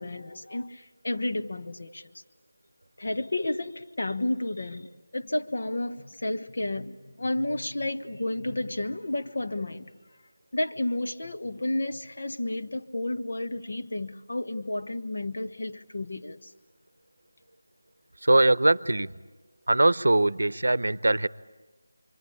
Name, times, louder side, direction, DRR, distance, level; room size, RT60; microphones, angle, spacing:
voice 1, 0.0-2.1 3.0-9.9 10.5-16.5, left 1 dB, 50° left, 1.2 m, -31 dB
voice 2, 18.3-19.1 19.7-21.3, right 2 dB, 90° right, 0.8 m, -21 dB
26.5 x 25.0 x 8.7 m
figure-of-eight pair, 180°, 0 cm